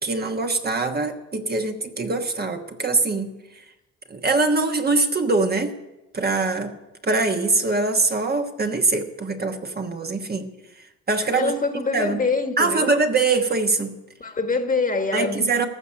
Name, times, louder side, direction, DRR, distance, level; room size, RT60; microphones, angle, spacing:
voice 1, 0.0-3.6 4.1-5.7 6.1-6.8 7.0-10.5 10.8-11.6 11.9-12.3 12.6-14.0 15.1-15.7, right 3 dB, 30° right, 1.3 m, -23 dB
voice 2, 11.3-12.9 14.2-15.7, left 4 dB, 25° left, 1.5 m, -25 dB
14.5 x 6.1 x 10.0 m
cardioid pair, 90°, 30 cm